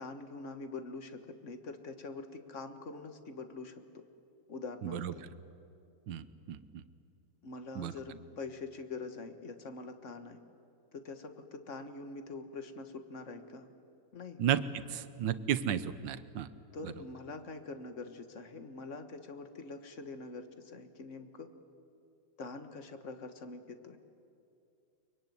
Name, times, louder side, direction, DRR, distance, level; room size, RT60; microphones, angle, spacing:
voice 1, 0.0-3.8 4.5-5.2 7.4-10.4 10.9-13.7 14.1-14.4 16.7-21.5 22.4-24.0, left 3 dB, 40° left, 8 dB, 1.7 m, -44 dB
voice 2, 4.8-5.1 6.1-6.8 7.7-7.9 14.4-16.5 16.8-16.9, right 9 dB, 70° right, 13 dB, 1.6 m, -33 dB
23.5 x 22.5 x 9.5 m, 2.6 s
omnidirectional pair, 2.1 m